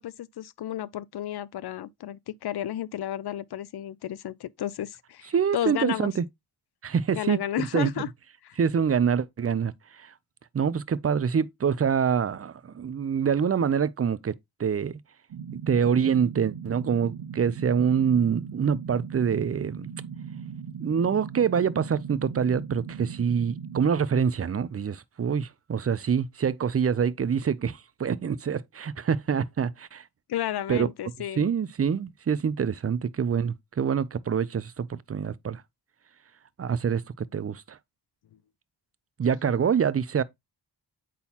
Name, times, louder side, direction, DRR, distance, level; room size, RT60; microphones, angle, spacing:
voice 1, 0.0-6.1 7.1-8.1 8.4-8.6 30.3-31.5, left 11 dB, 65° left, 0.5 m, -32 dB
voice 2, 5.3-6.2 6.8-8.0 8.6-10.1 10.5-14.3 14.6-15.0 15.5-19.9 20.8-30.0 30.7-30.9 31.4-35.6 36.6-37.8 39.2-40.2, right 7 dB, 35° right, 0.5 m, -26 dB
sound 1, 15.3-23.9, right 7 dB, 75° right, 0.8 m, -39 dB
8.3 x 3.9 x 2.9 m
wide cardioid pair, 80°, 42 cm